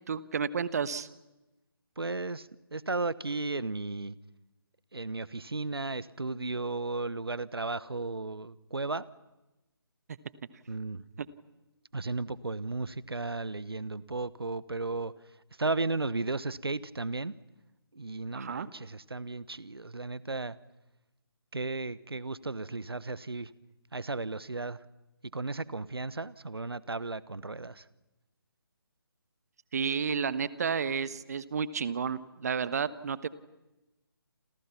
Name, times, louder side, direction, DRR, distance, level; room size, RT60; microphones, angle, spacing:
voice 1, 0.1-1.1 11.2-11.3 18.3-18.7 29.7-33.3, right 6 dB, 40° right, 16 dB, 1.2 m, -31 dB
voice 2, 2.0-4.2 4.9-9.0 10.7-11.0 11.9-15.1 15.6-17.3 17.9-20.6 21.5-23.5 23.9-24.8 25.3-27.8, right 3 dB, 75° right, 19 dB, 1.1 m, -34 dB
29.0 x 27.5 x 5.9 m, 1.0 s
figure-of-eight pair, 145°, 13 cm